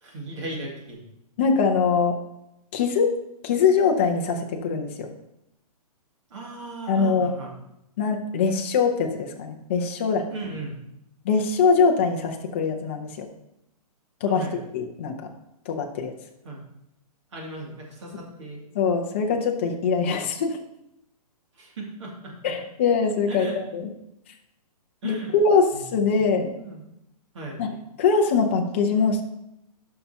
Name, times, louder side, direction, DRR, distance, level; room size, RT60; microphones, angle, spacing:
voice 1, 0.0-1.0 6.3-7.5 10.3-10.8 14.2-14.6 16.4-16.6 17.3-18.6 21.6-22.5 23.3-23.6 25.0-25.3 25.7-25.8 26.5-26.8 27.3-27.6, right 2 dB, 50° right, -2 dB, 2.3 m, -37 dB
voice 2, 1.4-2.2 2.7-3.1 3.4-5.1 6.9-7.3 8.0-10.3 11.2-13.3 14.2-15.3 15.7-16.1 18.7-20.6 22.4-23.9 25.0-26.5 27.6-29.2, left 5 dB, 20° left, 2 dB, 0.5 m, -23 dB
11.0 x 5.6 x 2.8 m, 0.83 s
hypercardioid pair, 175°, 20 cm